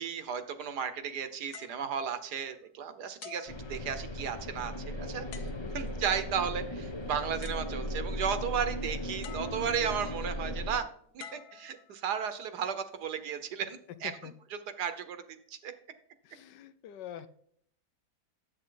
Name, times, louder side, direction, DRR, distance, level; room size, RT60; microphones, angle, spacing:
voice 1, 0.0-5.5 5.7-10.9 11.1-14.1 14.8-15.2 15.5-15.7, right 7 dB, 70° right, 10 dB, 1.5 m, -34 dB
sound 1, 1.5-2.7 3.2-4.4 5.3-6.0 7.1-7.2 7.4-8.2 9.2-10.0 11.2-12.3 13.0-13.3, left 8 dB, 70° left, 1.3 m, -50 dB
sound 2, 3.5-10.8, equal, 25° left, 0.6 m, -37 dB
voice 2, 16.2-17.3, left 10 dB, 85° left, 14 dB, 1.4 m, -45 dB
10.5 x 7.8 x 3.9 m, 0.65 s
omnidirectional pair, 1.8 m